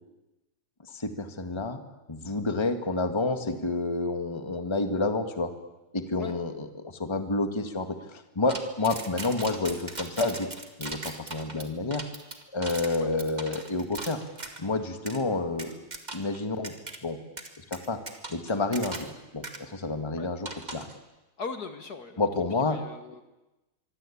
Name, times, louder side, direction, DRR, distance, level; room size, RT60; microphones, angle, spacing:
voice 1, 0.9-1.8 2.1-5.5 5.9-10.5 10.8-12.0 12.5-14.2 14.6-15.8 16.1-16.7 17.0-17.2 17.6-18.0 18.3-20.9 22.2-22.8, left 3 dB, 15° left, 7 dB, 1.7 m, -29 dB
sound 1, 8.5-14.6 15.1-15.2 15.6-16.4 16.6-17.0 17.4-19.2 19.4-19.6 20.4-21.0, right 2 dB, 20° right, 2.1 m, -39 dB
voice 2, 21.4-22.3 22.6-23.2, left 4 dB, 50° left, 8 dB, 2.0 m, -39 dB
24.5 x 24.0 x 8.6 m, 1.1 s
omnidirectional pair, 2.2 m